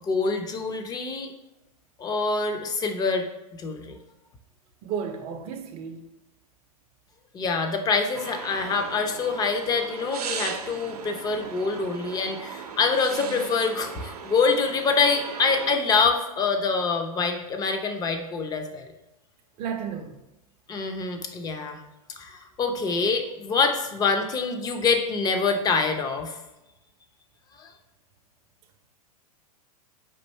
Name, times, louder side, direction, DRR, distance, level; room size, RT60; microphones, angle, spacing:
voice 1, 0.0-1.3 2.0-3.3 3.5-4.0 7.3-18.9 20.7-21.8 22.1-26.4 27.6-27.7, left 4 dB, 20° left, 0.5 m, -25 dB
voice 2, 4.8-6.0 19.6-20.2, right 7 dB, 35° right, 0.5 m, -33 dB
sound 1, 8.1-15.7, right 6 dB, 80° right, 0.6 m, -37 dB
4.4 x 2.7 x 4.2 m
hypercardioid pair, 110°, 19 cm